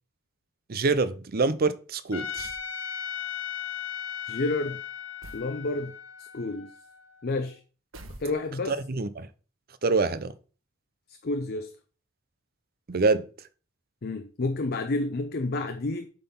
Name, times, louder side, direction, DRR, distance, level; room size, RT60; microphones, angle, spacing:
voice 1, 0.7-2.5 8.7-9.3 9.8-10.3 12.9-13.2, right 3 dB, 45° right, 0.6 m, -25 dB
Trumpet, 2.1-7.3, left 8 dB, 65° left, 1.0 m, -37 dB
sound 1, 2.3-2.7 5.2-5.5 7.9-8.7, right 1 dB, 75° right, 1.2 m, -46 dB
voice 2, 4.3-4.8 5.3-5.9 6.2-6.7 7.2-7.6 8.2-8.8 11.2-11.7 14.0-16.1, left 2 dB, 50° left, 0.6 m, -30 dB
7.9 x 4.0 x 5.5 m
head